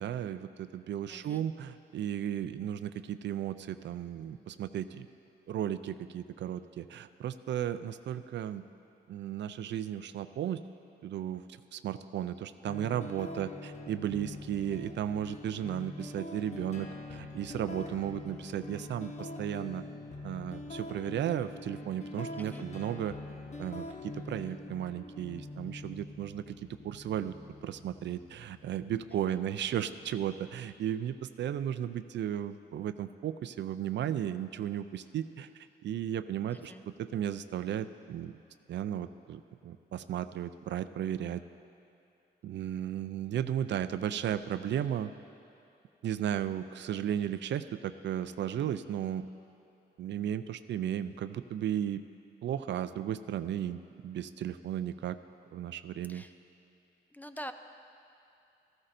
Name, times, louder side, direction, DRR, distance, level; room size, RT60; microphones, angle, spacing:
voice 1, 0.0-5.1 5.5-8.6 9.1-10.6 11.0-11.4 11.7-19.8 20.2-23.2 23.6-26.6 26.8-27.3 27.6-38.4 38.7-41.4 42.4-45.1 46.0-49.3 50.0-52.0 52.4-55.2 55.5-56.2, right 10 dB, 75° right, 12 dB, 0.4 m, -35 dB
voice 2, 1.1-1.5 22.4-22.7 29.1-29.4 36.5-36.8 56.1-56.3 57.1-57.5, equal, 10° left, 8 dB, 0.4 m, -46 dB
sound 1, 12.7-30.6, left 2 dB, 40° left, 0.8 m, -44 dB
14.5 x 14.0 x 2.6 m, 2.7 s
wide cardioid pair, 125°, 19 cm